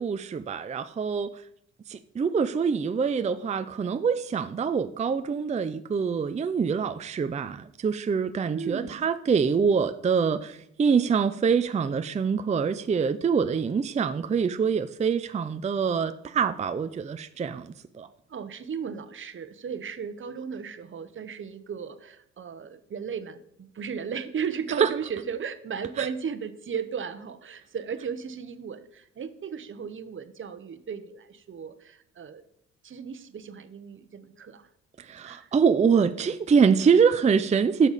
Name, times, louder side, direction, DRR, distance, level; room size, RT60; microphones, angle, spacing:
voice 1, 0.0-1.4 1.9-18.1 24.8-24.9 26.0-26.1 35.0-37.9, right 6 dB, 25° right, 0.4 m, -25 dB
voice 2, 8.5-9.1 18.3-32.4 32.8-34.7 35.2-35.5, right 7 dB, 40° right, 1.0 m, -35 dB
12.0 x 6.9 x 4.1 m
cardioid pair, 90°, 30 cm